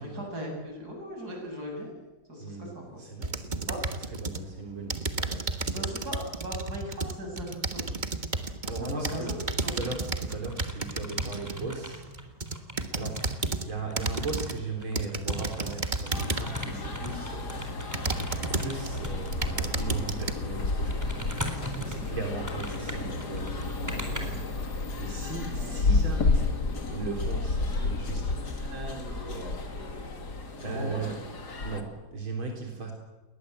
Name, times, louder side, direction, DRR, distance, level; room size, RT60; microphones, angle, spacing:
voice 1, 0.0-1.9 2.3-3.0 3.7-3.8 5.7-8.0 8.7-9.8 25.5-25.8 30.6-31.1, equal, 50° right, 1 dB, 8.0 m, -38 dB
voice 2, 2.4-3.8 4.2-5.9 8.3-9.4 9.6-12.0 12.9-13.2 13.6-17.6 18.4-24.4 25.0-26.6 26.9-30.1 30.5-31.2 31.6-32.9, right 3 dB, 85° right, 2 dB, 4.5 m, -38 dB
sound 1, 3.2-4.5 4.9-11.6 12.1-13.7 14.0-14.6 15.0-16.6 17.2-17.3 17.9-18.9 19.3-20.3, right 3 dB, 25° right, 1.4 m, -32 dB
sound 2, 8.9-9.3 9.6-13.5 13.9-19.4 20.2-20.4 20.9-24.2, equal, 10° right, 4.0 m, -40 dB
sound 3, 16.1-31.8, left 3 dB, 55° left, 3.0 m, -31 dB
29.5 x 21.5 x 8.0 m, 1.2 s
omnidirectional pair, 2.2 m